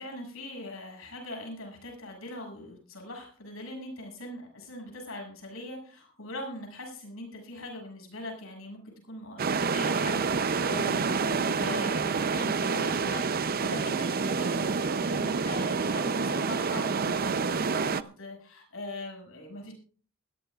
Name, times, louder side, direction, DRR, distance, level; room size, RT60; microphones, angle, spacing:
voice 1, 0.0-19.7, left 1 dB, 70° left, 1 dB, 6.9 m, -41 dB
sound 1, 9.4-18.0, right 5 dB, 45° right, 0.6 m, -28 dB
20.5 x 14.5 x 2.4 m, 0.41 s
head